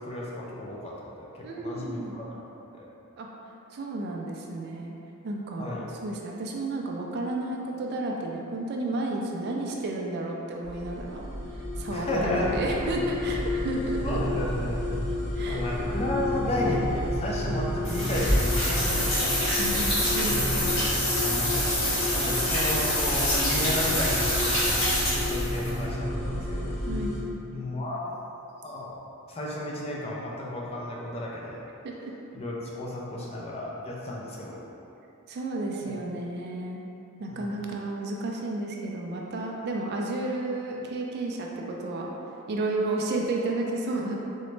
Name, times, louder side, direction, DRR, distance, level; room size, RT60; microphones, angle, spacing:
voice 1, 0.1-1.1 1.3-2.4 2.7-2.9 5.6-5.8 11.9-12.5 14.0-14.8 15.5-19.4 21.2-21.8 22.1-24.5 25.1-26.7 27.5-28.1 28.6-29.0 29.3-31.6 32.3-34.6 35.8-36.0 37.3-37.5, left 1 dB, 30° left, -4 dB, 0.4 m, -33 dB
voice 2, 1.4-2.2 3.2-3.3 3.7-4.9 5.2-11.3 11.8-13.4 13.6-14.2 15.4-15.9 19.6-20.9 26.9-27.2 31.8-32.1 35.3-36.8 37.2-42.1 42.5-44.1, right 2 dB, 45° right, -1 dB, 0.3 m, -32 dB
sound 1, 10.6-27.2, left 1 dB, 85° left, 1.4 m, -31 dB
sound 2, 17.8-25.7, left 1 dB, 60° left, 0.9 m, -26 dB
3.8 x 2.1 x 3.1 m, 2.9 s
head